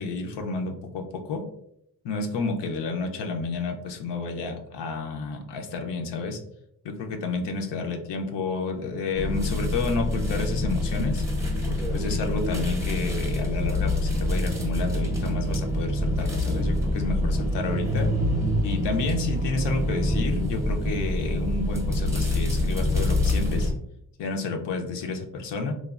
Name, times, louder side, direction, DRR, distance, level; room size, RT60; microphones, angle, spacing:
voice 1, 0.0-1.5 2.0-6.4 6.8-11.2 11.7-18.1 18.6-23.7 24.2-25.7, left 3 dB, 90° left, 4 dB, 0.6 m, -30 dB
sound 1, 9.1-23.7, left 1 dB, 5° right, 0.6 m, -26 dB
3.1 x 2.3 x 2.3 m, 0.76 s
wide cardioid pair, 110°, 41 cm